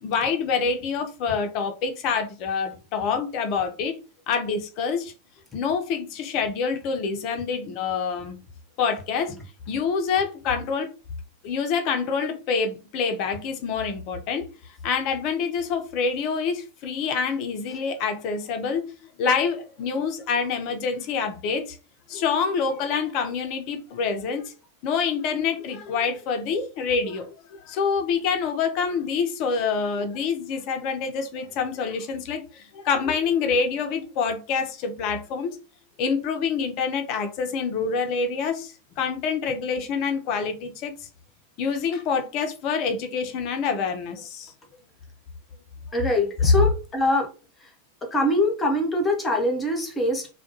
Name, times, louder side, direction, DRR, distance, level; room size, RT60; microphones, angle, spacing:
voice 1, 0.0-4.0 4.3-5.1 5.5-8.4 8.8-9.3 9.7-10.9 11.4-14.5 14.8-21.8 22.1-24.5 24.8-35.6 36.0-40.9 41.6-44.5 46.6-46.7, left 5 dB, 40° left, 0.5 m, -26 dB
voice 2, 45.9-47.3 48.1-50.3, left 1 dB, 15° left, 0.8 m, -23 dB
2.2 x 2.2 x 2.9 m
figure-of-eight pair, 90°, 0 cm